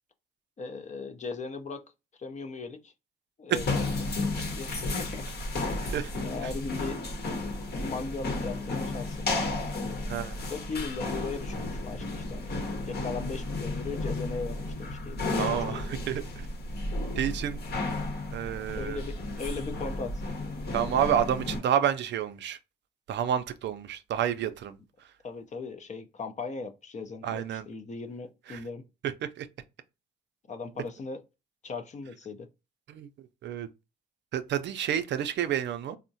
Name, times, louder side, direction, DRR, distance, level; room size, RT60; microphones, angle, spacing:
voice 1, 0.6-1.8 2.2-2.9 3.4-3.9 4.5-5.3 5.8-7.0 7.8-9.3 10.4-12.5 12.9-15.9 17.8-17.9 18.7-20.2 25.2-28.9 30.5-31.2 31.6-32.5, left 4 dB, 35° left, 0.5 m, -38 dB
sound 1, 3.5-21.6, left 2 dB, 55° left, 0.9 m, -33 dB
voice 2, 15.4-16.5 17.2-17.6 18.3-19.0 20.7-22.6 23.1-24.8 27.2-27.7 28.5-28.6 29.0-29.5 32.9-33.1 33.4-33.7 34.3-36.0, right 9 dB, 65° right, 0.4 m, -29 dB
3.6 x 2.1 x 2.6 m
cardioid pair, 90°, 20 cm